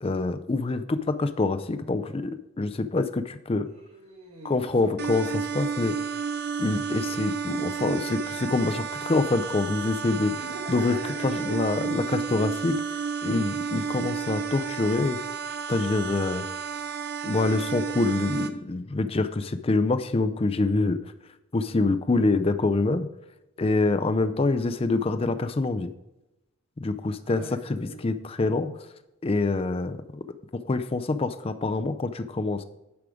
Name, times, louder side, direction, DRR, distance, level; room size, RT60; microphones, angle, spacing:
voice 1, 0.0-3.7 4.4-5.3 5.5-6.0 6.6-10.3 10.7-11.0 11.2-15.2 15.7-16.4 17.2-21.0 21.5-23.1 23.6-25.9 26.8-27.4 27.7-28.7 29.2-30.2 30.7-32.6, left 3 dB, 25° left, 10 dB, 0.4 m, -26 dB
voice 2, 3.7-5.2 10.3-11.6 27.2-28.0, right 2 dB, 90° right, -4 dB, 1.7 m, -42 dB
sound 1, 5.0-18.5, right 6 dB, 50° right, 0.5 m, -32 dB
10.5 x 4.9 x 4.9 m, 0.96 s
head